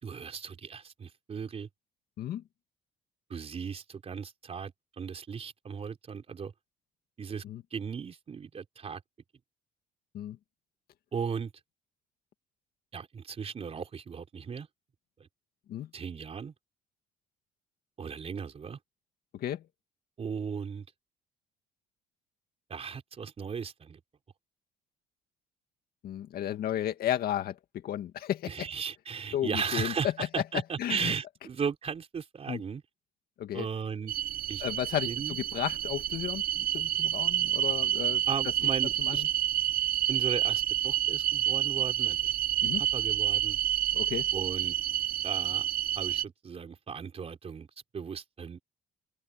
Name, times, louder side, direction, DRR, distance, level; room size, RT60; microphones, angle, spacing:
voice 1, 0.0-1.7 3.3-6.5 7.2-7.4 7.7-9.0 11.1-11.5 12.9-14.7 15.2-15.3 15.9-16.5 18.0-18.8 20.2-20.9 22.7-24.0 28.5-32.8 33.5-34.1 34.5-34.6 35.0-35.4 38.3-39.2 40.1-42.3 42.6-43.6 44.3-44.8 45.2-45.7 46.0-47.7 47.9-48.6, right 6 dB, 35° right, 4.2 m, -36 dB
voice 2, 26.0-28.7 29.3-30.1 30.8-31.1 32.5-32.6 33.4-33.7 34.6-38.2 39.0-39.3 42.6-42.8 43.9-44.3, left 11 dB, 65° left, 2.1 m, -33 dB
sound 1, 34.1-46.2, right 12 dB, 60° right, 0.8 m, -29 dB
open air
cardioid pair, 110°, 17 cm